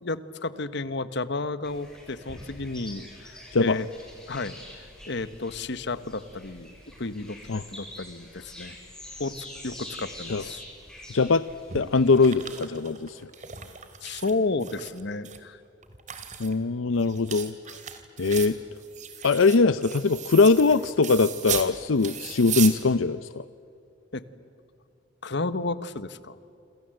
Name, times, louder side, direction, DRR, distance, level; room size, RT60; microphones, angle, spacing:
voice 1, 0.0-3.9 4.3-4.6 5.1-8.8 9.2-10.6 14.0-15.6 24.1-24.2 25.2-26.4, left 3 dB, 60° left, 14 dB, 1.2 m, -32 dB
sound 1, 1.6-12.3, left 1 dB, 5° left, 7.3 m, -45 dB
voice 2, 11.1-11.4 11.7-13.2 16.4-17.8 18.2-18.6 19.2-23.4, left 4 dB, 85° left, 14 dB, 0.6 m, -22 dB
sound 2, 11.7-14.3 14.6-15.4 15.8-21.7 22.0-22.7, right 8 dB, 40° right, 2.5 m, -36 dB
28.5 x 27.0 x 7.8 m, 2.6 s
head